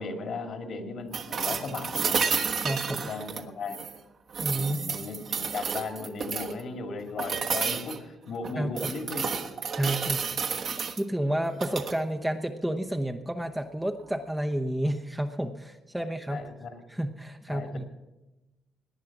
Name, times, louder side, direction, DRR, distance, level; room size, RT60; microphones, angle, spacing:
voice 1, 0.0-2.2 2.8-3.8 4.5-9.3 16.3-16.8 17.5-17.9, left 3 dB, 55° left, 5 dB, 2.2 m, -36 dB
sound 1, 1.1-4.0 4.3-6.6 7.2-8.0 8.4-11.0 11.5-12.0 14.0-14.1, right 6 dB, 50° right, 1.3 m, -31 dB
voice 2, 2.6-3.1 4.4-4.8 8.6-8.9 9.7-16.5 16.9-17.8, right 1 dB, 5° right, 5 dB, 0.8 m, -31 dB
18.5 x 10.5 x 6.0 m, 1.0 s
cardioid pair, 120°, 0 cm